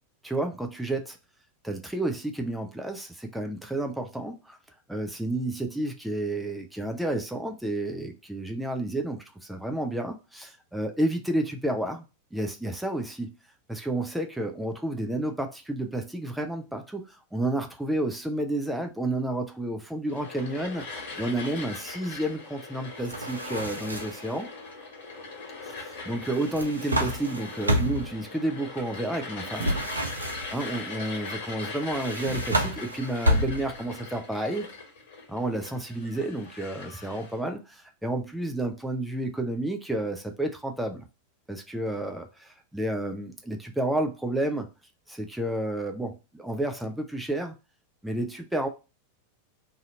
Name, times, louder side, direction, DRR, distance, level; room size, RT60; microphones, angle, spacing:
voice 1, 0.2-1.2 1.6-4.6 4.9-12.1 12.3-13.3 13.7-20.8 21.2-24.5 25.7-29.8 30.5-34.7 35.3-41.1 41.5-44.7 45.1-47.6 48.0-48.7, right 1 dB, 5° right, 0.4 m, -31 dB
sound 1, 20.1-37.4, left 3 dB, 55° left, 1.2 m, -40 dB
sound 2, 23.0-24.3 26.3-28.2 29.6-30.7 31.9-33.9, equal, 80° right, 0.5 m, -29 dB
2.7 x 2.5 x 4.1 m
figure-of-eight pair, 90°, 0 cm